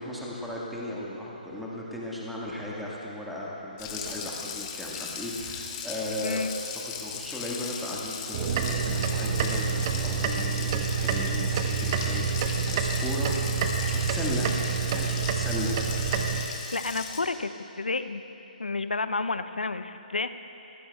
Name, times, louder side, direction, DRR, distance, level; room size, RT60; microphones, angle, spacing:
voice 1, 0.0-13.3 13.6-14.5 14.9-15.8, left 1 dB, ahead, -6 dB, 1.6 m, -36 dB
Water tap faucet, 3.8-17.2, left 6 dB, 25° left, 1.2 m, -37 dB
sound 1, 8.3-16.4, right 6 dB, 35° right, 1.0 m, -28 dB
voice 2, 16.7-17.5 17.8-18.2 18.6-20.3, left 3 dB, 85° left, 11 dB, 0.6 m, -30 dB
24.0 x 15.0 x 2.3 m, 3.0 s
figure-of-eight pair, 145°, 5 cm